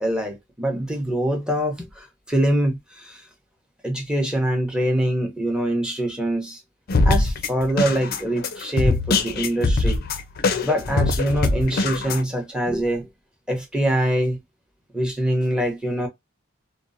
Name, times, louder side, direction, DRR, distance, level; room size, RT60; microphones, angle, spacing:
voice 1, 0.0-3.2 3.8-6.6 7.0-10.0 10.6-13.1 13.5-14.4 14.9-16.1, right 1 dB, 5° right, 0.7 m, -24 dB
sound 1, 6.9-12.2, left 3 dB, 50° left, 0.4 m, -22 dB
2.8 x 2.0 x 2.5 m
head